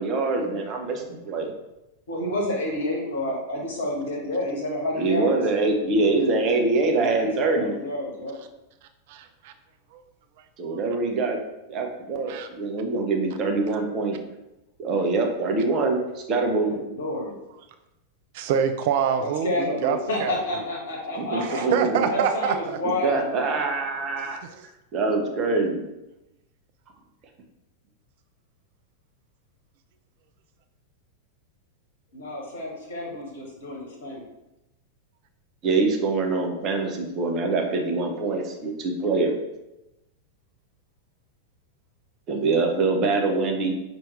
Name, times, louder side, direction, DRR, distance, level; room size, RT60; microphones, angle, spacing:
voice 1, 0.0-1.5 4.9-7.8 10.6-11.4 11.7-14.2 14.8-16.7 21.2-22.1 23.0-24.4 24.9-25.8 35.6-39.4 42.3-43.7, right 3 dB, 35° right, 2 dB, 0.7 m, -24 dB
voice 2, 2.1-5.3 7.0-8.3 16.7-17.3 19.2-21.6 22.1-23.5 32.1-34.2, left 1 dB, 60° left, -1 dB, 1.2 m, -29 dB
voice 3, 9.1-9.5 10.6-10.8 12.3-12.5 18.3-20.7 21.4-22.8, right 7 dB, 50° right, 9 dB, 0.3 m, -26 dB
5.6 x 2.6 x 3.2 m, 0.94 s
figure-of-eight pair, 90°, 0 cm